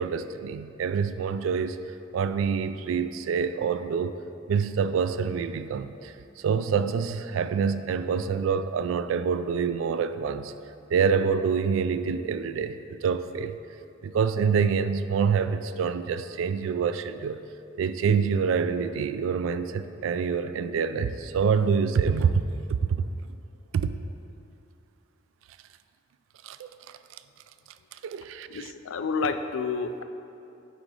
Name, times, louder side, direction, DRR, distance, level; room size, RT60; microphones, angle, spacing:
voice 1, 0.0-1.8 2.1-4.2 4.5-10.5 10.9-13.6 14.0-17.4 17.8-22.4 22.9-23.0 23.7-23.9 26.4-26.7 27.9-28.7, right 6 dB, 80° right, 11 dB, 0.3 m, -26 dB
voice 2, 28.5-30.0, left 4 dB, 85° left, 9 dB, 0.4 m, -29 dB
9.1 x 3.8 x 4.8 m, 2.7 s
head